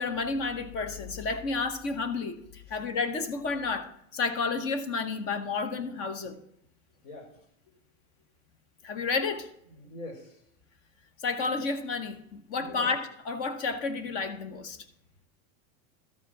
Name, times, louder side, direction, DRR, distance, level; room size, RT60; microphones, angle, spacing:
voice 1, 0.0-6.4 8.8-9.5 11.2-14.8, left 4 dB, 35° left, 0.9 m, -31 dB
voice 2, 7.0-7.4 9.7-10.4 12.6-12.9, left 2 dB, 65° left, 4.1 m, -44 dB
13.0 x 5.0 x 5.9 m
supercardioid pair, 160°, 41 cm